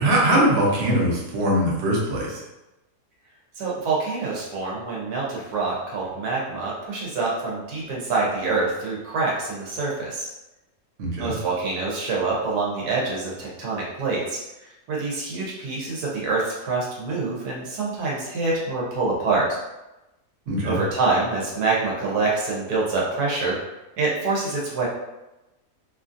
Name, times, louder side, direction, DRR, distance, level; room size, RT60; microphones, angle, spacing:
voice 1, 0.0-2.4 11.0-11.3 20.5-20.8, right 1 dB, 55° right, -4 dB, 0.9 m, -21 dB
voice 2, 3.6-10.3 11.2-14.4 14.9-19.6 20.6-23.6 24.0-24.9, right 3 dB, 85° right, -4 dB, 1.3 m, -26 dB
2.9 x 2.5 x 2.5 m, 0.98 s
omnidirectional pair, 1.6 m